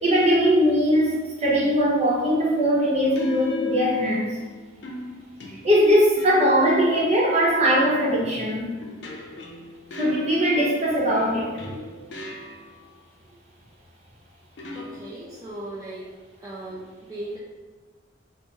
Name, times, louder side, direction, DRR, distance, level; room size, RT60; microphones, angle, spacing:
voice 1, 0.0-4.4 5.6-8.7 9.4-9.6 10.0-11.9, equal, 35° right, -5 dB, 0.8 m, -21 dB
sound 1, 1.1-1.4 3.2-4.4 4.8-7.0 7.8-10.8 11.6-12.9 14.6-15.5, left 2 dB, 75° left, 0.5 m, -37 dB
voice 2, 14.7-16.1 16.4-17.4, right 1 dB, 15° right, -6 dB, 0.3 m, -37 dB
4.0 x 2.1 x 3.4 m, 1.4 s
head